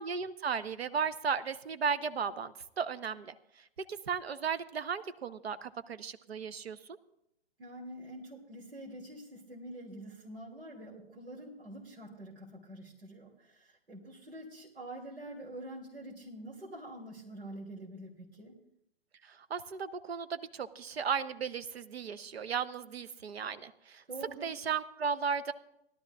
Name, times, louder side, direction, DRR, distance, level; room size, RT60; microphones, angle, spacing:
voice 1, 0.0-3.3 3.9-6.8 19.3-24.0 24.4-25.5, right 6 dB, 70° right, 13 dB, 0.9 m, -35 dB
voice 2, 7.6-18.5 24.1-24.5, right 1 dB, 90° right, -4 dB, 2.9 m, -46 dB
20.0 x 12.5 x 2.4 m, 0.80 s
figure-of-eight pair, 125°, 32 cm